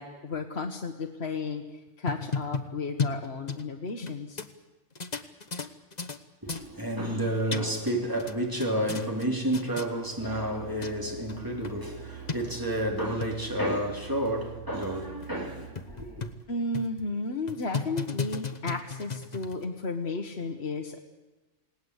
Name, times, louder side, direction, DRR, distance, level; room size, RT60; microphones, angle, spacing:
voice 1, 0.0-4.5 16.5-21.0, left 3 dB, 55° left, 1.7 m, -33 dB
sound 1, 1.9-4.1 4.4-4.5 5.0-6.2 6.5-6.7 7.2-7.9 8.2-9.3 9.5-9.9 10.5-10.6 10.8-10.9 11.3-11.4 11.6-11.7 12.3-12.4 13.0-13.3 13.8-13.9 14.3-14.4 14.8-14.9 15.2-15.3 15.8-16.4 16.7-17.0 17.5-19.6, left 5 dB, 35° left, 1.3 m, -34 dB
voice 2, 6.4-16.3, right 1 dB, 15° right, 3.3 m, -30 dB
sound 2, 10.2-15.7, right 9 dB, 65° right, 3.0 m, -44 dB
29.0 x 19.0 x 8.2 m
omnidirectional pair, 1.3 m